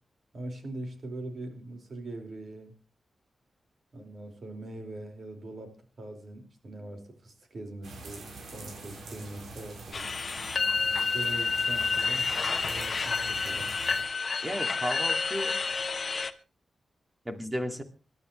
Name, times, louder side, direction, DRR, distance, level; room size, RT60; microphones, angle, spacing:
voice 1, 0.3-2.7 3.9-10.1 10.9-12.3 12.7-13.7, right 2 dB, 50° right, 4 dB, 4.9 m, -42 dB
sound 1, 7.8-14.0, right 3 dB, 80° right, 7.4 m, -45 dB
sound 2, 9.9-16.3, left 4 dB, 40° left, 1.1 m, -29 dB
voice 2, 14.4-15.6 17.3-17.8, equal, 15° right, 6 dB, 2.3 m, -33 dB
26.0 x 12.0 x 3.2 m, 0.34 s
wide cardioid pair, 155°, 0 cm